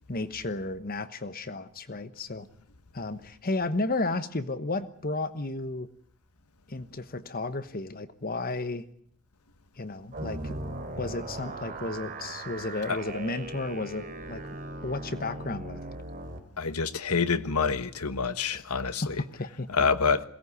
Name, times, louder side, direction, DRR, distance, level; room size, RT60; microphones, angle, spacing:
voice 1, 0.1-2.5 2.9-5.9 6.7-8.9 9.8-10.5 11.0-14.4 14.8-15.8 18.5-19.7, left 2 dB, 40° left, 1.1 m, -33 dB
sound 1, 10.1-16.4, right 2 dB, 40° right, 3.1 m, -39 dB
voice 2, 16.6-19.1 19.7-20.2, left 5 dB, 85° left, 1.4 m, -27 dB
22.5 x 18.0 x 9.7 m
head